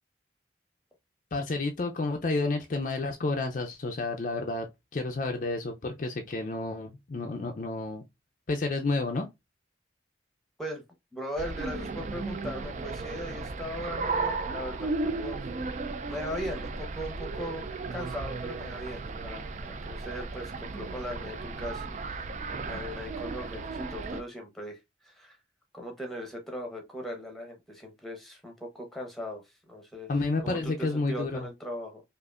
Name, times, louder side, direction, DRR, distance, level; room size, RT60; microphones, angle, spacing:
voice 1, 1.3-4.7 4.9-8.0 8.5-9.3 30.1-31.5, left 3 dB, 45° left, 0.5 m, -30 dB
voice 2, 11.1-15.4 16.1-22.2 22.6-24.8 25.0-25.3 25.7-30.1 30.4-32.0, equal, ahead, 0.9 m, -39 dB
sound 1, 11.4-24.2, right 3 dB, 40° right, 0.3 m, -35 dB
4.9 x 2.5 x 2.4 m
head